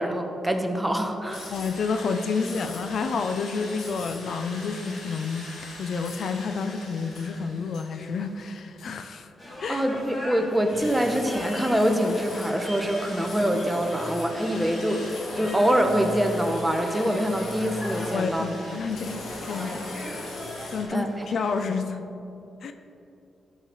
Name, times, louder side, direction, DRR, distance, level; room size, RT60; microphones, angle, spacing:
voice 1, 0.0-1.5 9.7-18.4 20.9-21.3, equal, 10° right, 4 dB, 0.9 m, -25 dB
sound 1, 1.3-8.5 8.8-8.9 9.9-20.8, left 2 dB, 80° left, 1.8 m, -39 dB
voice 2, 1.5-5.5 5.8-9.3 9.6-9.8 18.1-19.9 20.2-20.3 20.7-22.0 22.6-22.7, left 5 dB, 65° left, 8 dB, 0.6 m, -29 dB
sound 2, 9.4-21.7, equal, 25° left, 2.4 m, -40 dB
13.0 x 6.1 x 4.1 m, 2.7 s
cardioid pair, 100°, 0 cm